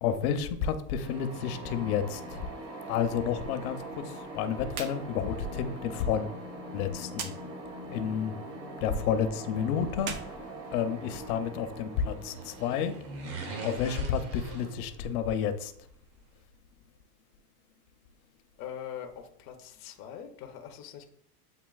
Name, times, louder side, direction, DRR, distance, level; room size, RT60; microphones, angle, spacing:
voice 1, 0.0-2.5 2.9-6.4 6.7-7.3 7.9-8.4 8.8-13.0 13.6-15.7, left 7 dB, 65° left, 0.7 m, -31 dB
sound 1, 1.0-14.6, right 1 dB, 75° right, 1.5 m, -43 dB
sound 2, 4.7-5.0 5.3-5.4 7.1-7.4 9.9-11.2, right 6 dB, 40° right, 0.6 m, -39 dB
sound 3, 11.9-15.4 15.6-15.7, right 2 dB, 55° right, 1.2 m, -42 dB
voice 2, 18.6-21.1, left 9 dB, 30° left, 0.4 m, -42 dB
8.2 x 2.8 x 2.3 m
supercardioid pair, 140°, 47 cm